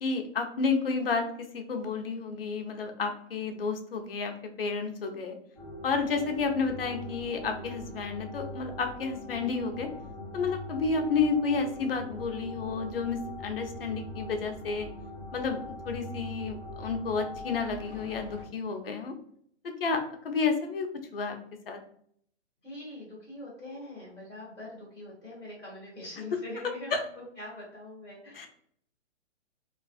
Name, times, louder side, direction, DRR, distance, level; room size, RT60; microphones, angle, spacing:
voice 1, 0.0-5.4 5.8-9.9 10.3-14.9 15.3-19.1 19.8-20.9 21.1-21.4 21.7-21.8 26.9-27.0 28.4-28.5, left 4 dB, 55° left, 5 dB, 0.5 m, -31 dB
sound 1, 5.5-18.4, left 1 dB, 25° right, 1.4 m, -42 dB
voice 2, 22.6-28.5, left 1 dB, 10° right, -19 dB, 0.7 m, -43 dB
2.4 x 2.3 x 2.3 m, 0.64 s
hypercardioid pair, 175°, 35 cm